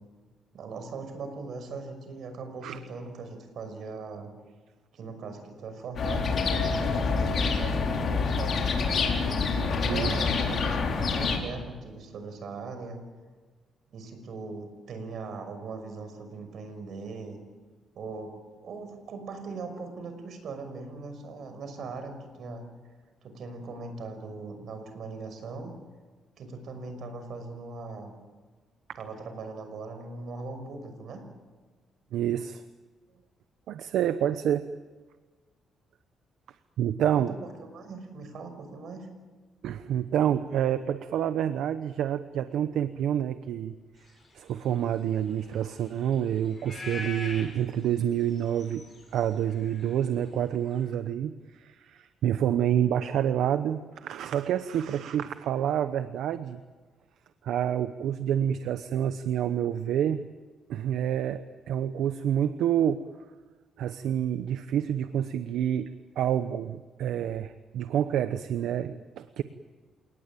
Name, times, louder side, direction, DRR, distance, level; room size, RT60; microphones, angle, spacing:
voice 1, 0.5-4.3 4.9-8.6 9.6-13.0 13.9-17.4 17.9-18.4 18.6-22.7 23.2-25.7 26.4-28.1 29.0-31.2 37.0-39.1, right 4 dB, 60° right, 7 dB, 5.9 m, -40 dB
sound 1, 6.0-11.4, left 4 dB, 50° left, 4.5 m, -27 dB
voice 2, 32.1-32.6 33.7-34.7 36.8-37.3 39.6-43.7 44.3-48.8 49.1-56.6 57.4-60.2 60.7-63.0 63.8-65.9 66.2-69.4, right 10 dB, 80° right, 11 dB, 0.9 m, -28 dB
sound 2, 44.1-50.9, left 3 dB, 25° left, 8.0 m, -44 dB
28.5 x 19.0 x 9.2 m, 1.4 s
cardioid pair, 135°, 0 cm